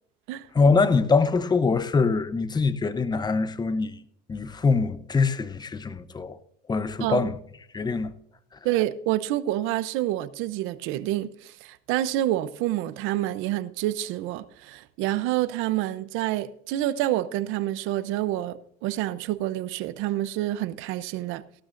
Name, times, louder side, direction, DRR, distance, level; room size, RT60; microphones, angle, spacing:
voice 1, 0.5-4.0 4.3-6.4 6.7-7.4 7.7-8.1, left 4 dB, 20° left, 0.8 m, -23 dB
voice 2, 8.6-21.4, right 14 dB, 80° right, 0.7 m, -28 dB
16.5 x 12.0 x 2.6 m
cardioid pair, 110°, 20 cm